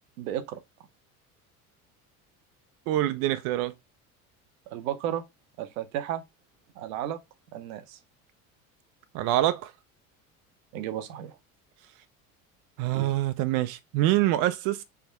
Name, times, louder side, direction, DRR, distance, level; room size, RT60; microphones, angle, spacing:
voice 1, 0.2-0.6 4.7-5.2 5.6-6.2 6.8-7.2 7.5-8.0 10.7-11.4 12.9-13.1, right 11 dB, 70° right, 0.8 m, -33 dB
voice 2, 2.9-3.7 9.1-9.7 12.8-14.8, right 14 dB, 50° right, 0.5 m, -25 dB
3.5 x 3.5 x 4.2 m
hypercardioid pair, 70°, 43 cm